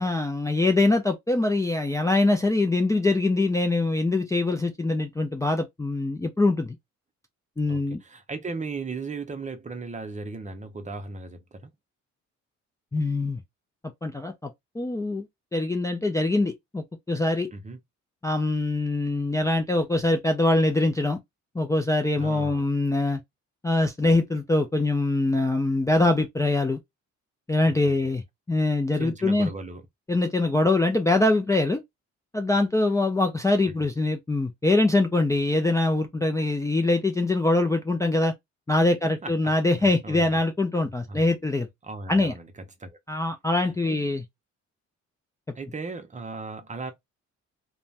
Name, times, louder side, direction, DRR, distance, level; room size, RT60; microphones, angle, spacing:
voice 1, 0.0-6.7 7.6-8.0 12.9-13.4 14.0-14.5 14.8-15.3 15.5-17.5 18.2-21.2 21.5-23.2 23.6-26.8 27.5-29.5 30.1-31.8 32.3-38.3 38.7-41.7 42.1-42.3 43.1-44.2, left 2 dB, 10° left, 0.4 m, -23 dB
voice 2, 7.7-11.7 17.5-17.8 22.2-22.6 27.6-28.1 28.9-29.8 39.0-39.5 39.8-40.4 41.1-41.3 41.8-43.0 43.8-44.0 45.5-46.9, right 3 dB, 25° right, 0.7 m, -37 dB
2.5 x 2.2 x 3.2 m
cardioid pair, 90°, 30 cm